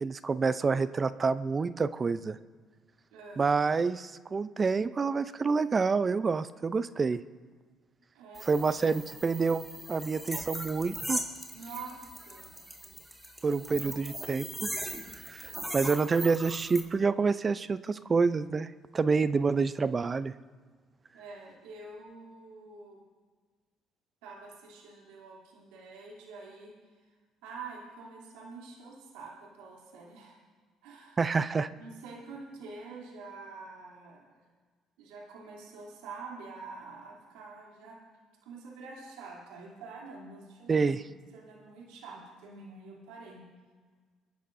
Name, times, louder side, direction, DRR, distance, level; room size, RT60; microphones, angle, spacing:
voice 1, 0.0-2.4 3.4-7.2 8.5-11.2 13.4-14.7 15.2-20.3 31.2-31.7 40.7-41.0, right 4 dB, 35° right, 14 dB, 0.5 m, -28 dB
voice 2, 3.1-3.5 8.1-8.7 11.5-12.6 21.1-23.0 24.2-27.1 27.4-30.4 30.8-31.2 31.8-34.4 35.0-38.0 38.4-40.9 41.3-43.5, right 4 dB, 85° right, -3 dB, 2.9 m, -46 dB
sound 1, 8.3-16.8, equal, 5° right, 1.8 m, -39 dB
26.0 x 10.5 x 2.6 m, 1.5 s
supercardioid pair, 75°, 0 cm